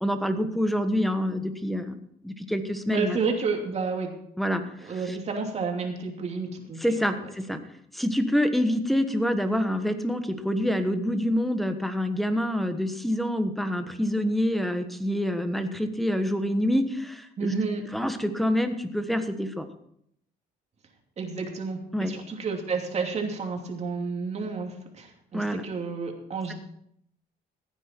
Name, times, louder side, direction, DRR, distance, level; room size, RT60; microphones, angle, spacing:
voice 1, 0.0-2.0 2.2-3.2 4.4-5.2 6.8-7.6 7.9-17.5 17.9-19.7 21.9-22.1 25.3-25.6, equal, ahead, 8 dB, 1.3 m, -26 dB
voice 2, 2.9-4.1 4.6-6.8 17.4-17.8 21.2-26.5, right 4 dB, 40° right, 2 dB, 2.8 m, -30 dB
15.5 x 9.2 x 4.5 m, 0.72 s
cardioid pair, 110°, 17 cm